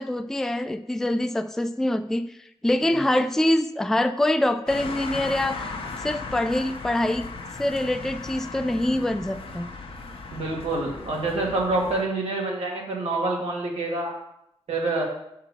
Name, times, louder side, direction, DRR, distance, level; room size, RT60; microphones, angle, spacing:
voice 1, 0.0-2.4 2.6-5.7 6.0-7.3 7.6-9.7, left 1 dB, 5° left, 9 dB, 0.3 m, -24 dB
sound 1, 4.7-12.1, left 3 dB, 65° left, 1.0 m, -37 dB
voice 2, 10.3-14.1 14.7-15.0, right 2 dB, 80° right, -1 dB, 2.0 m, -27 dB
6.6 x 4.5 x 6.5 m, 0.80 s
wide cardioid pair, 120°, 10 cm